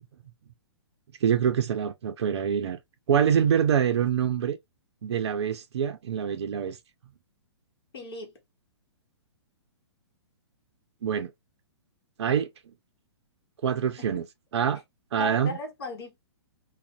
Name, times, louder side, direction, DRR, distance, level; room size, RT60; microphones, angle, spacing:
voice 1, 1.2-2.8 3.1-4.6 5.0-6.8 11.0-11.3 12.2-12.5 13.6-14.3 14.5-14.8 15.1-15.6, right 8 dB, 70° right, 0.4 m, -25 dB
voice 2, 7.9-8.3 15.2-16.2, left 3 dB, 60° left, 0.9 m, -36 dB
2.4 x 2.0 x 2.5 m
hypercardioid pair, 120°, 14 cm